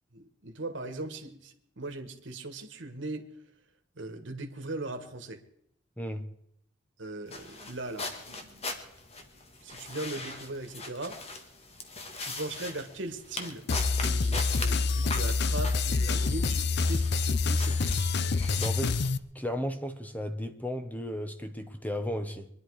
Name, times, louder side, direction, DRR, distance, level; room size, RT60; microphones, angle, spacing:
voice 1, 0.1-3.2 4.0-5.4 7.0-8.7 9.6-11.2 12.2-13.6 14.0-18.1, right 2 dB, 75° right, 1.6 m, -39 dB
voice 2, 6.0-6.3 18.6-19.0 19.3-22.5, equal, 10° left, 1.1 m, -34 dB
sound 1, 7.3-19.1, left 2 dB, 35° left, 1.6 m, -41 dB
sound 2, 13.7-19.2, left 4 dB, 60° left, 0.6 m, -27 dB
24.0 x 10.5 x 4.8 m
head